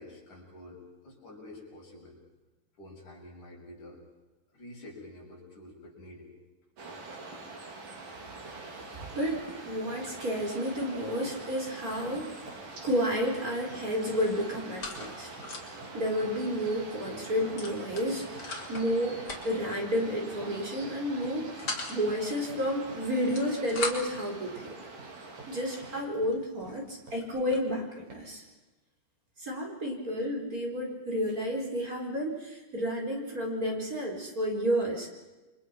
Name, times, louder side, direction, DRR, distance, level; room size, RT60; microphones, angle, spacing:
voice 1, 0.0-2.2 2.8-4.1 4.5-6.3, left 1 dB, 65° left, -2 dB, 8.3 m, -48 dB
sound 1, 6.8-26.0, right 3 dB, 80° right, 5.2 m, -45 dB
voice 2, 9.1-15.3 15.6-19.2 19.4-21.4 21.9-24.8 25.5-28.4 29.4-35.1, equal, 25° right, 0 dB, 4.8 m, -31 dB
sound 2, 9.9-10.1 10.5-27.7 28.1-28.4, right 3 dB, 60° right, 7.9 m, -52 dB
sound 3, 12.7-13.5 13.8-15.9 16.3-16.4 16.6-16.8 17.6-18.9 19.2-19.7 20.5-20.8 21.2-22.0 23.1-24.2 25.0-25.1 25.7-25.8 26.3-26.4 26.6-27.7, left 3 dB, 30° left, 3.1 m, -39 dB
29.5 x 24.5 x 6.0 m, 1.1 s
omnidirectional pair, 3.7 m